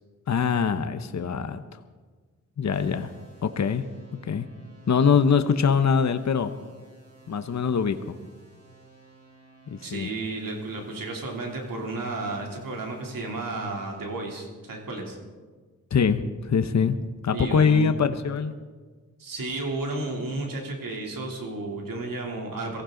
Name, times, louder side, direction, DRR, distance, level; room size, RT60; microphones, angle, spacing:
voice 1, 0.3-1.6 2.6-3.1 3.4-3.8 4.2-4.5 4.9-6.5 7.3-8.2 9.7-10.1 15.9-17.0 17.2-18.5, left 6 dB, 55° left, 9 dB, 0.9 m, -23 dB
sound 1, 2.7-14.1, right 3 dB, 45° right, 5.2 m, -53 dB
voice 2, 9.8-15.2 17.3-18.0 19.2-22.8, right 2 dB, 80° right, 0 dB, 3.2 m, -33 dB
23.0 x 15.5 x 3.9 m, 1.4 s
cardioid pair, 75°, 33 cm